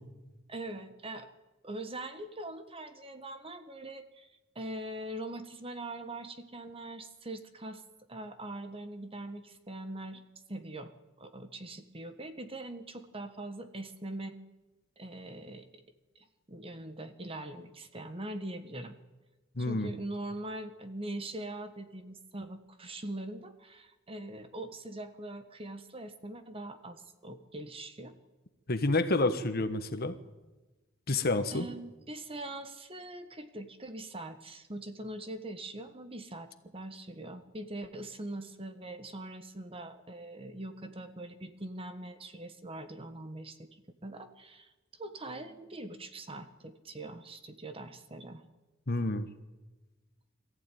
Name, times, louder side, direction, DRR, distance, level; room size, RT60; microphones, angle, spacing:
voice 1, 0.5-1.3 1.6-4.3 4.5-7.8 8.1-10.2 10.5-10.9 11.2-14.4 15.0-15.8 16.1-18.9 19.6-28.1 31.5-43.7 44.0-44.7 45.0-48.4, right 1 dB, 25° right, 8 dB, 1.4 m, -42 dB
voice 2, 19.6-19.9 28.7-30.1 31.1-31.7 48.9-49.3, left 2 dB, 50° left, 9 dB, 1.3 m, -29 dB
22.5 x 14.5 x 9.3 m, 1.2 s
head